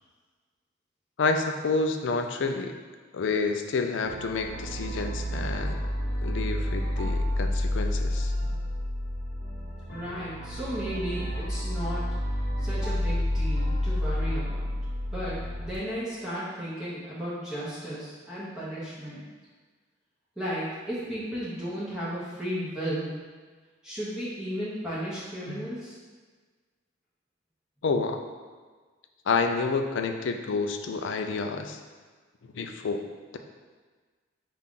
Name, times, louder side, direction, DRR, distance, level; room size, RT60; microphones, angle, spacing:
voice 1, 1.2-2.8 3.1-5.8 6.2-8.3 25.5-25.6 27.8-28.2 29.3-31.8 32.4-33.0, left 4 dB, 70° left, 5 dB, 0.4 m, -29 dB
sound 1, 4.0-15.8, left 1 dB, 50° left, 0.8 m, -30 dB
voice 2, 9.9-12.1 12.6-14.7 15.1-19.3 20.4-23.1 23.8-26.0, equal, 5° right, -10 dB, 0.8 m, -34 dB
5.7 x 2.5 x 3.7 m, 1.5 s
head